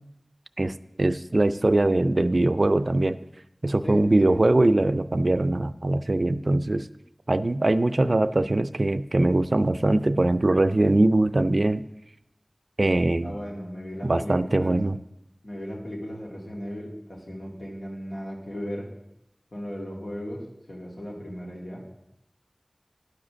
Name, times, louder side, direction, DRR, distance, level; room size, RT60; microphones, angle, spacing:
voice 1, 0.6-3.2 3.6-6.9 7.3-11.8 12.8-13.3 14.0-15.0, right 2 dB, 70° right, 13 dB, 0.4 m, -22 dB
voice 2, 3.8-4.5 13.2-14.8 15.4-18.9 19.5-21.8, equal, 85° left, -3 dB, 2.3 m, -36 dB
10.5 x 5.1 x 6.2 m, 0.85 s
wide cardioid pair, 45°, 0 cm